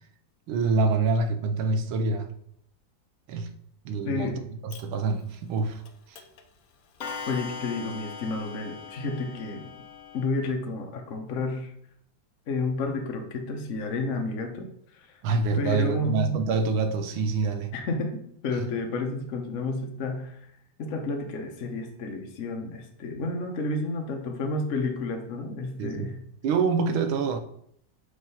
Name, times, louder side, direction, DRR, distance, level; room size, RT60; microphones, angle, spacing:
voice 1, 0.5-2.3 3.3-3.5 3.8-4.3 4.6-5.8 6.1-6.2 15.2-17.7 25.8-26.1 26.4-27.4, right 4 dB, 85° right, 1.6 m, -26 dB
voice 2, 4.0-4.4 7.3-9.7 10.1-11.7 12.5-14.7 14.9-15.1 15.6-16.4 17.7-20.5 20.8-26.2, left 3 dB, 50° left, 1.2 m, -31 dB
Clock, 4.7-4.8 5.9-6.0 6.2-6.4 7.0-10.3, left 4 dB, 65° left, 0.9 m, -40 dB
5.8 x 5.0 x 5.6 m
omnidirectional pair, 2.2 m